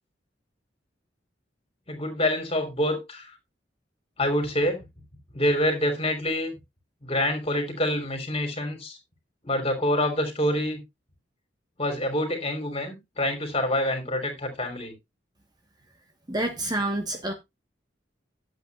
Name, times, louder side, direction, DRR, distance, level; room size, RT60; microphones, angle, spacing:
voice 1, 1.9-3.3 4.2-4.9 5.3-6.5 7.0-9.0 9.4-10.8 11.8-14.9, left 1 dB, 35° left, 3.3 m, -26 dB
voice 2, 16.3-17.3, right 1 dB, 25° right, 1.3 m, -28 dB
12.0 x 8.3 x 2.4 m
head